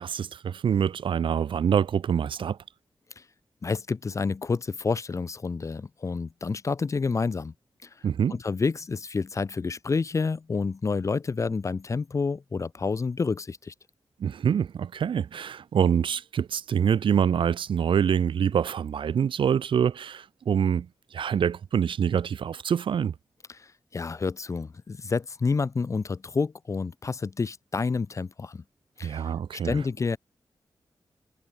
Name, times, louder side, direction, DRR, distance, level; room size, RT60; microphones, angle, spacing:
voice 1, 0.0-2.6 8.0-8.4 14.2-20.9 21.1-23.1 29.0-29.8, right 8 dB, 80° right, 0.7 m, -25 dB
voice 2, 3.6-7.5 7.8-7.9 8.3-13.7 23.5-28.6 29.0-29.2 29.5-30.2, left 4 dB, 40° left, 0.4 m, -29 dB
cardioid pair, 65°, 8 cm